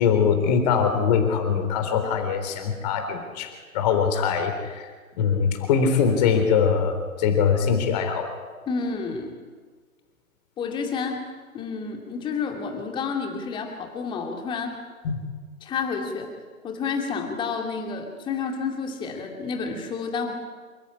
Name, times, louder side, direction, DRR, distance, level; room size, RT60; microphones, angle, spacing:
voice 1, 0.0-4.9 5.2-8.3 15.0-15.2, left 6 dB, 30° left, 6 dB, 3.8 m, -22 dB
voice 2, 8.7-9.4 10.6-11.2 11.5-14.8 15.6-16.3 16.6-20.3, left 5 dB, 10° left, 3 dB, 2.6 m, -30 dB
27.0 x 14.5 x 10.0 m, 1.5 s
figure-of-eight pair, 135°, 43 cm